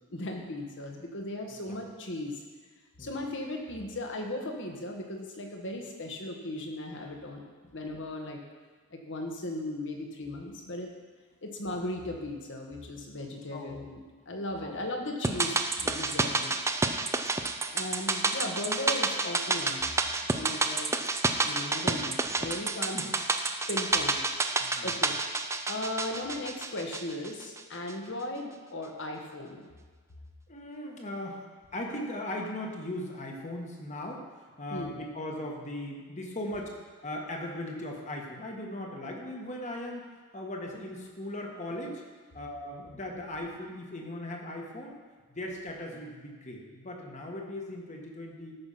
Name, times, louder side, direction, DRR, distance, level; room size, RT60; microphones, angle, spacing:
voice 1, 0.1-2.4 3.0-7.4 7.7-8.4 8.9-10.9 11.4-14.0 14.2-16.5 17.7-19.8 20.3-20.9 21.4-23.0 23.7-24.2 24.5-25.2 25.7-29.7 34.7-34.9, left 1 dB, 55° left, 2 dB, 1.5 m, -37 dB
voice 2, 13.5-13.9 14.6-14.8 22.9-23.1 24.6-24.9 30.5-31.5 31.7-34.3 34.6-36.7 37.0-40.0 40.3-42.0 42.3-45.0 45.3-48.6, left 1 dB, 35° left, 1 dB, 1.5 m, -38 dB
sound 1, 15.2-27.6 27.9-28.0, right 3 dB, 15° right, 0.5 m, -29 dB
13.5 x 6.1 x 5.7 m, 1.5 s
head